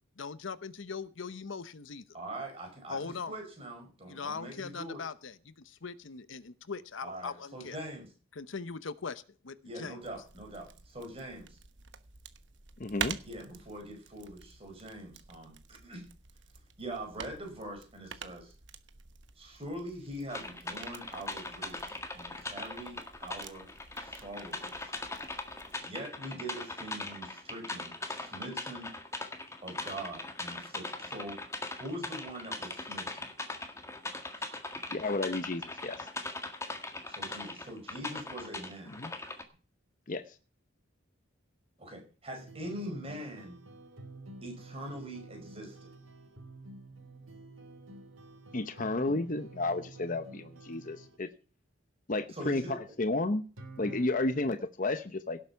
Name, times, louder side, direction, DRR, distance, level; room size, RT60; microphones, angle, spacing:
voice 1, 0.2-2.1 2.9-3.3 4.1-7.8 8.3-10.0, left 5 dB, 75° left, 15 dB, 0.8 m, -40 dB
voice 2, 2.1-5.0 7.0-8.1 9.6-11.6 13.3-16.1 16.8-18.5 19.4-23.6 24.0-24.9 25.8-28.9 29.6-31.4 31.7-33.2 34.4-34.5 37.1-38.9 41.8-43.5 44.4-45.9 52.3-52.8, right 1 dB, 30° right, 3 dB, 5.0 m, -43 dB
sound 1, 10.0-25.8, right 7 dB, 60° right, 1.1 m, -47 dB
voice 3, 12.8-13.2 34.9-36.1 38.9-39.1 40.1-40.2 48.5-51.3 52.1-53.5 53.8-55.4, left 2 dB, 40° left, 10 dB, 0.8 m, -32 dB
sound 2, 20.3-39.4, left 2 dB, 15° left, 1.7 m, -40 dB
sound 3, 42.3-51.2 53.6-54.1, right 2 dB, 85° right, 3.0 m, -50 dB
17.5 x 7.9 x 5.8 m, 0.37 s
head